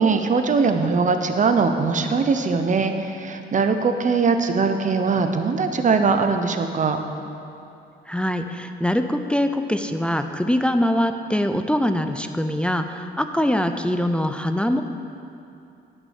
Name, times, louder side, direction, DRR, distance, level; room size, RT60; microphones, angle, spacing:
voice 1, 0.0-7.0, right 4 dB, 40° right, 7 dB, 0.9 m, -21 dB
voice 2, 8.1-14.8, left 1 dB, 5° left, 7 dB, 0.5 m, -23 dB
11.0 x 6.2 x 6.5 m, 2.7 s
cardioid pair, 90°, 20 cm